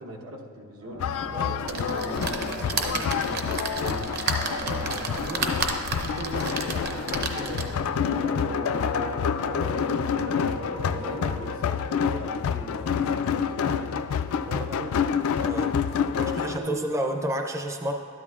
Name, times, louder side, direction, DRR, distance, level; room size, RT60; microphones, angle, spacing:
voice 1, 0.0-4.3 4.6-14.1 14.3-15.0 16.1-17.0, right 1 dB, 90° right, -1 dB, 1.1 m, -39 dB
sound 1, 0.8-11.5, equal, 70° right, 2.1 m, -38 dB
sound 2, 1.0-16.6, left 7 dB, 80° left, 0.3 m, -28 dB
sound 3, 1.6-7.9 8.4-8.5 8.8-8.9, right 4 dB, 50° right, 0.7 m, -32 dB
voice 2, 4.8-5.3 14.5-14.6 15.4-15.8 16.2-17.9, right 1 dB, 15° right, 4 dB, 0.4 m, -31 dB
12.5 x 10.5 x 2.4 m, 2.2 s
head